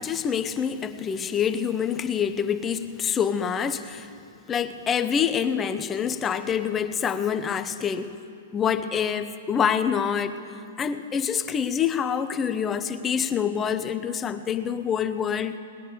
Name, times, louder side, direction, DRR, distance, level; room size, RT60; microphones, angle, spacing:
voice 1, 0.0-4.1 4.5-8.2 8.5-10.4 10.8-15.6, left 7 dB, 20° left, 10 dB, 0.7 m, -26 dB
19.0 x 10.5 x 6.8 m, 2.5 s
hypercardioid pair, 120°, 0 cm